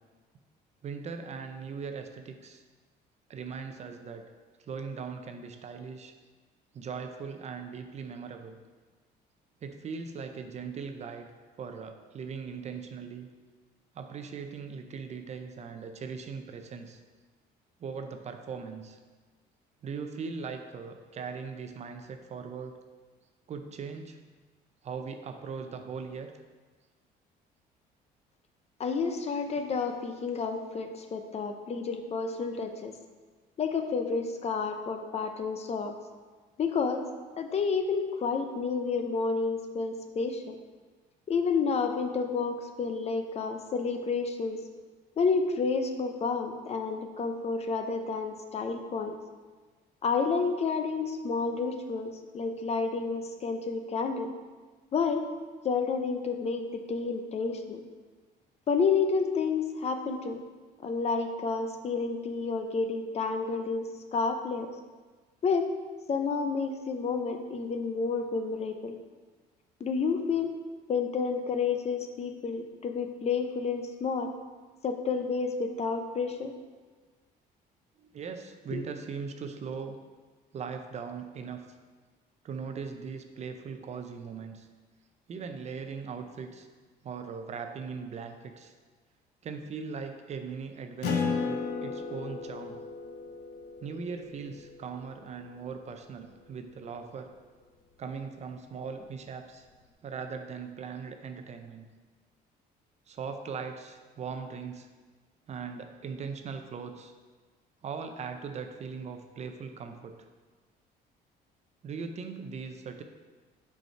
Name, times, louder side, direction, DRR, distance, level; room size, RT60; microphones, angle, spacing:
voice 1, 0.8-2.6 3.3-4.3 4.6-6.1 6.7-8.6 9.6-11.3 11.6-13.3 13.9-17.0 17.8-19.0 19.8-22.8 23.5-24.2 24.8-26.3 78.0-80.0 80.5-81.6 82.4-84.7 85.3-86.7 87.0-88.7 89.4-92.8 93.8-97.3 98.0-99.7 100.0-101.9 103.1-104.9 105.5-107.1 107.8-110.2 111.8-113.0, right 5 dB, 40° right, 6 dB, 0.6 m, -39 dB
voice 2, 28.8-32.9 33.6-35.9 36.6-37.0 37.4-40.6 41.3-44.6 45.2-49.2 50.0-54.3 54.9-55.2 55.6-57.8 58.7-60.4 60.8-64.7 65.4-65.6 66.1-69.0 69.8-70.5 70.9-74.3 74.8-76.5 78.7-78.8, left 5 dB, 40° left, 6 dB, 0.6 m, -30 dB
Acoustic guitar, 91.0-96.0, left 5 dB, 90° left, 0.9 m, -35 dB
5.3 x 4.7 x 4.5 m, 1.4 s
cardioid pair, 110°, 17 cm